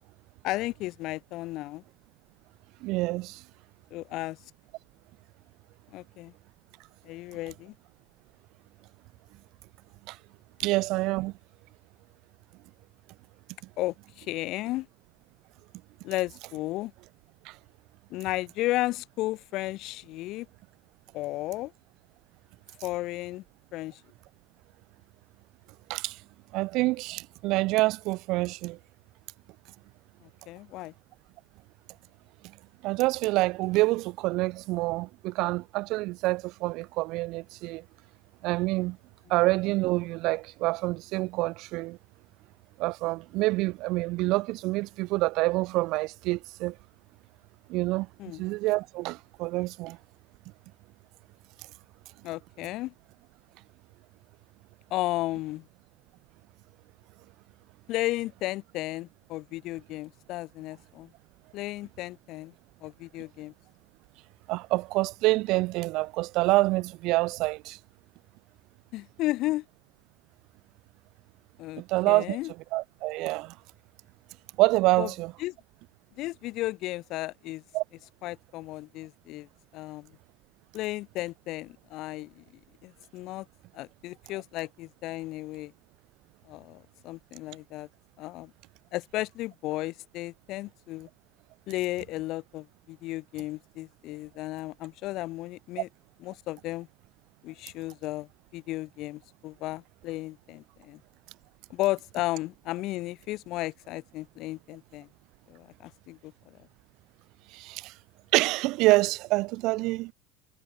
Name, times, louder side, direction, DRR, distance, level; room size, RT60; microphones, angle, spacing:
voice 1, 0.4-1.8 3.9-4.4 5.9-6.3 7.0-7.7 13.8-14.9 16.0-16.9 18.1-20.5 21.1-21.7 22.8-23.4 23.7-24.0 30.2-30.9 48.2-48.4 52.2-52.9 54.9-55.7 57.9-61.1 61.5-62.5 62.8-63.5 68.9-69.7 71.6-72.5 75.0-75.1 75.4-75.6 76.2-77.6 78.2-79.5 79.7-80.1 80.7-82.4 82.8-83.5 83.7-85.7 86.5-87.9 88.2-88.5 88.9-91.1 91.7-95.9 96.2-96.9 97.4-101.0 101.7-105.1 105.5-106.6, left 18 dB, 60° left, 1.9 m, -34 dB
voice 2, 2.8-3.4 10.1-10.2 10.6-11.3 17.5-17.6 25.9-26.2 26.5-28.8 32.8-37.8 38.4-39.0 39.3-42.0 42.8-46.8 47.7-48.1 48.4-50.0 64.5-67.8 71.8-72.4 72.7-73.5 74.6-75.3 77.7-77.8 107.5-107.9 108.3-110.1, right 21 dB, 60° right, 1.9 m, -27 dB
supercardioid pair, 100°, 0 cm